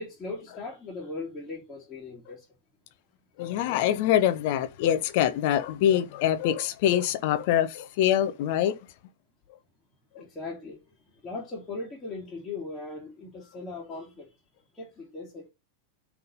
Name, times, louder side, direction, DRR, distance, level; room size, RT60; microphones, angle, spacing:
voice 1, 0.0-2.5 10.2-10.8 11.2-14.3 14.7-15.5, left 3 dB, 15° left, 2.7 m, -38 dB
voice 2, 3.4-8.8 10.1-10.2, left 11 dB, 50° left, 0.9 m, -24 dB
9.4 x 3.7 x 5.4 m
figure-of-eight pair, 90°, 0 cm